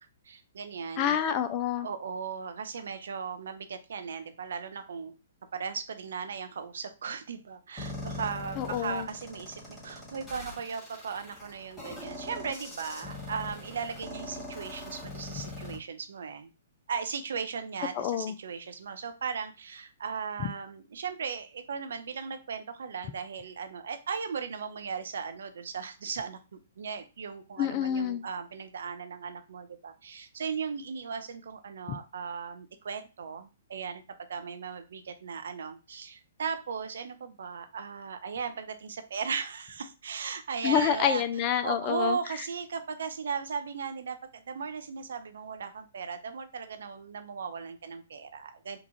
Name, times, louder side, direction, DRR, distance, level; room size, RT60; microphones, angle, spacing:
voice 1, 0.2-1.2 1.8-5.1 5.5-16.5 16.9-34.0 34.3-41.2 41.6-48.8, right 6 dB, 65° right, 8 dB, 0.5 m, -37 dB
voice 2, 1.0-1.9 8.6-9.1 18.0-18.3 27.6-28.2 40.6-42.2, left 9 dB, 35° left, 9 dB, 0.4 m, -27 dB
sound 1, 7.8-15.8, left 2 dB, 10° left, 1.9 m, -42 dB
3.7 x 2.4 x 3.0 m, 0.30 s
figure-of-eight pair, 120°, 0 cm